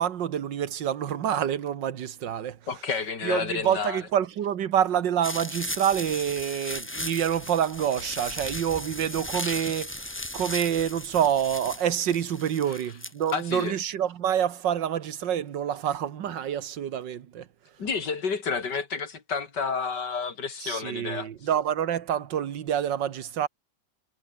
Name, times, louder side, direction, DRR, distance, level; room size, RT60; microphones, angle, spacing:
voice 1, 0.0-2.6 3.2-17.5 20.6-23.5, right 9 dB, 90° right, 1.9 m, -27 dB
voice 2, 2.7-4.0 12.7-12.8 13.3-13.8 17.8-21.3, left 5 dB, 70° left, 3.1 m, -30 dB
sound 1, 5.2-13.6, left 1 dB, 10° left, 1.3 m, -36 dB
omnidirectional pair, 1.9 m